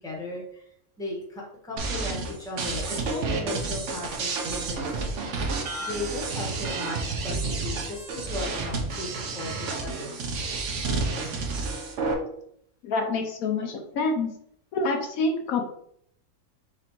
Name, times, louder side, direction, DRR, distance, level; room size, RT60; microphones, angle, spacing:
voice 1, 0.0-4.9 5.8-10.1, left 2 dB, 5° left, -2 dB, 0.9 m, -36 dB
sound 1, 1.8-12.1, right 3 dB, 60° right, 1.0 m, -30 dB
voice 2, 12.8-14.3 14.7-15.6, left 3 dB, 70° left, 3 dB, 1.0 m, -27 dB
4.2 x 4.1 x 2.9 m, 0.70 s
omnidirectional pair, 1.6 m